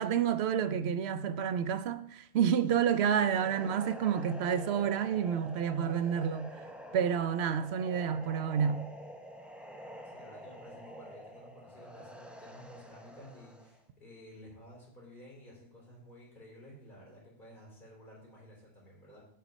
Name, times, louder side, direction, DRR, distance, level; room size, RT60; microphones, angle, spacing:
voice 1, 0.0-6.5 6.9-8.9, right 8 dB, 65° right, 0.7 m, -29 dB
sound 1, 2.7-13.8, equal, ahead, 0.4 m, -48 dB
voice 2, 3.3-3.8 10.0-19.2, equal, 40° left, 3.8 m, -53 dB
9.1 x 5.1 x 5.3 m
omnidirectional pair, 1.3 m